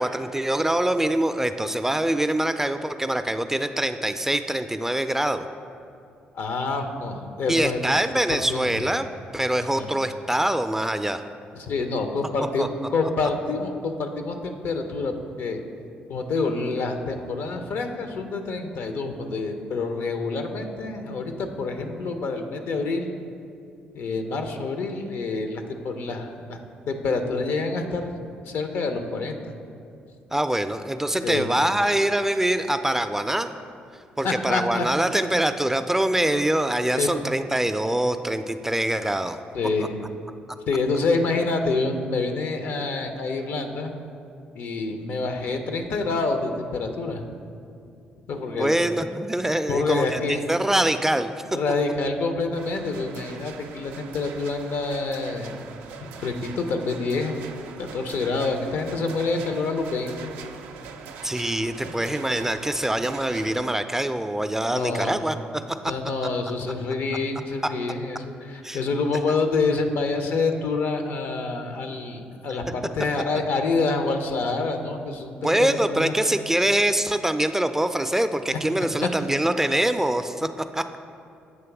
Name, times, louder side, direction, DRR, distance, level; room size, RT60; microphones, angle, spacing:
voice 1, 0.0-5.5 7.5-9.1 9.3-11.2 12.6-12.7 30.3-33.6 34.2-39.4 48.5-51.3 61.2-65.4 68.6-68.8 75.4-81.0, right 1 dB, 10° right, 9 dB, 0.3 m, -24 dB
voice 2, 6.3-7.8 8.3-8.8 9.7-9.9 11.5-15.1 15.4-15.6 16.1-23.1 23.9-26.6 26.9-28.1 28.5-29.5 31.2-31.5 34.2-34.9 35.1-35.2 36.9-37.3 39.5-40.0 40.7-43.9 44.6-47.2 48.3-48.7 49.7-50.4 51.5-55.6 56.0-57.4 57.8-60.3 61.8-61.9 64.7-65.2 65.9-76.1 78.5-78.6 79.0-79.1, left 3 dB, 70° left, 6 dB, 0.6 m, -27 dB
sound 1, 52.6-63.7, right 6 dB, 85° right, 0.4 m, -42 dB
7.6 x 3.1 x 5.9 m, 2.5 s
supercardioid pair, 55°, 4 cm